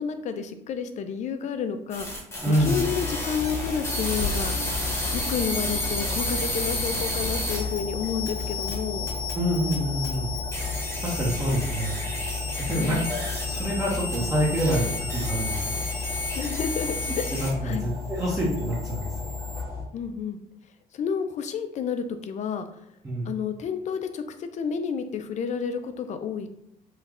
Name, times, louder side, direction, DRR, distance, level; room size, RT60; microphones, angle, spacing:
voice 1, 0.0-2.2 2.5-4.6 5.1-9.1 12.7-13.0 16.4-17.9 19.9-20.4 20.9-22.6 23.2-26.5, left 6 dB, 45° left, 8 dB, 0.4 m, -30 dB
sound 1, 1.9-17.7 18.0-19.6, left 1 dB, 15° left, 1.1 m, -32 dB
sound 2, 2.3-19.8, left 4 dB, 60° right, 1.0 m, -33 dB
voice 2, 2.4-2.7 9.3-10.3 11.0-12.0 12.6-15.8 17.3-19.3 23.0-23.3, equal, 20° right, -6 dB, 0.8 m, -27 dB
3.1 x 2.3 x 3.5 m, 0.75 s
cardioid pair, 110°, 17 cm